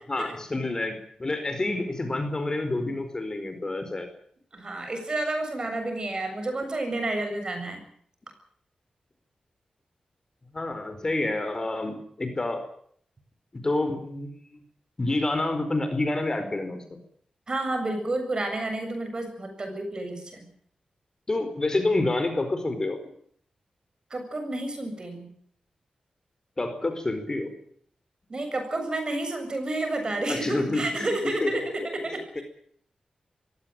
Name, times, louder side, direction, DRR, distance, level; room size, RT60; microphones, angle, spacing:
voice 1, 0.1-0.9 1.2-4.1 10.5-12.6 13.5-14.6 15.0-16.8 21.3-23.0 26.6-27.5 30.3-31.1 31.4-31.5, left 2 dB, 30° left, 8 dB, 4.6 m, -28 dB
voice 2, 4.5-7.8 17.5-20.5 24.1-25.3 28.3-32.4, right 2 dB, 40° right, 6 dB, 7.3 m, -30 dB
22.5 x 17.0 x 9.2 m, 0.62 s
wide cardioid pair, 110°, 2 cm